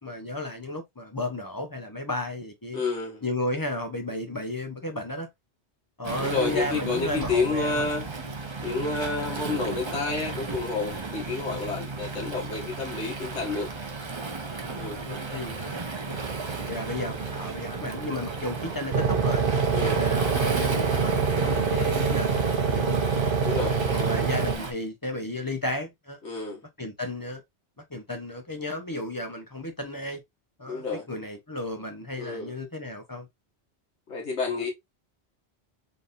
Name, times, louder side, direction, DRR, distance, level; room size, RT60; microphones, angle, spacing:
voice 1, 0.0-2.8 3.2-5.3 6.0-7.9 14.6-16.2 16.6-19.4 19.9-23.0 23.9-26.2 26.8-27.4 27.9-30.2 30.6-33.3, left 1 dB, 20° left, 0.7 m, -34 dB
voice 2, 2.7-3.2 6.2-8.1 8.6-13.7 14.8-15.0 19.7-20.0 23.4-23.8 26.2-26.6 30.7-31.1 32.2-32.6 34.1-34.7, left 4 dB, 90° left, 1.9 m, -29 dB
Waves surf, 6.0-24.7, right 3 dB, 30° right, 0.6 m, -34 dB
sound 1, 16.1-24.6, right 5 dB, 55° right, 0.9 m, -26 dB
4.0 x 3.6 x 2.5 m
omnidirectional pair, 1.1 m